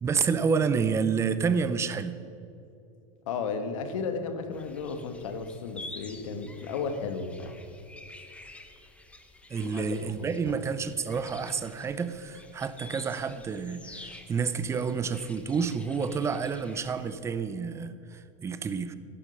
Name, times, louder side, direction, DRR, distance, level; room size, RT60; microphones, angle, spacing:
voice 1, 0.0-2.2 9.5-18.9, right 5 dB, 15° right, 12 dB, 0.6 m, -29 dB
voice 2, 3.3-7.5 9.6-9.8 10.2-10.6, left 5 dB, 85° left, 7 dB, 1.6 m, -34 dB
sound 1, 4.5-17.2, left 2 dB, 5° left, 1.0 m, -49 dB
12.5 x 12.0 x 5.4 m, 2.8 s
supercardioid pair, 145°, 16 cm